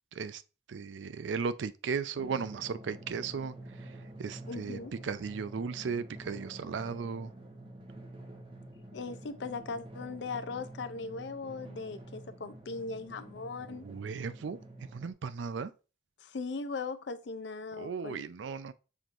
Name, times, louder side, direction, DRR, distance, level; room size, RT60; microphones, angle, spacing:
voice 1, 0.7-3.6 4.2-7.3 13.7-14.6 14.9-15.7 17.8-18.7, right 5 dB, 85° right, 0.4 m, -36 dB
Drum, 2.1-15.1, right 1 dB, 30° right, 0.9 m, -48 dB
voice 2, 4.5-4.9 8.9-13.8 16.2-18.2, left 4 dB, 70° left, 0.5 m, -39 dB
7.0 x 3.0 x 2.5 m
head